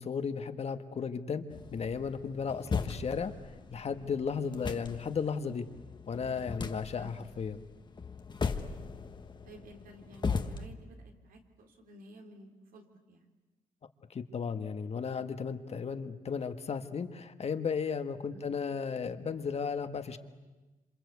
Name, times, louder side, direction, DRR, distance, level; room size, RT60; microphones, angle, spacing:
voice 1, 0.0-1.4 1.7-3.3 3.7-5.7 6.1-7.6 14.1-20.2, left 6 dB, 45° left, 9 dB, 1.5 m, -35 dB
sound 1, 1.5-10.7, left 5 dB, 30° left, 1.4 m, -38 dB
voice 2, 9.4-13.3 18.3-18.5, right 1 dB, 90° right, 3 dB, 3.4 m, -53 dB
27.5 x 26.5 x 8.2 m, 1.2 s
cardioid pair, 120°, 14 cm